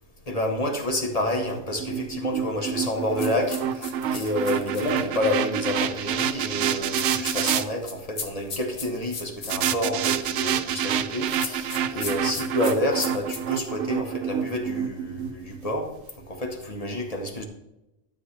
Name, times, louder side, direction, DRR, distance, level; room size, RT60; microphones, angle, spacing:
voice 1, 0.3-15.9 16.3-17.4, left 1 dB, 30° left, 2 dB, 1.3 m, -29 dB
sound 1, 1.5-7.6 9.5-15.7, right 9 dB, 75° right, 0.9 m, -28 dB
sound 2, 3.2-5.0 6.9-9.6 11.2-13.7, left 4 dB, 85° left, 1.6 m, -36 dB
12.5 x 7.4 x 3.4 m, 0.94 s
omnidirectional pair, 1.3 m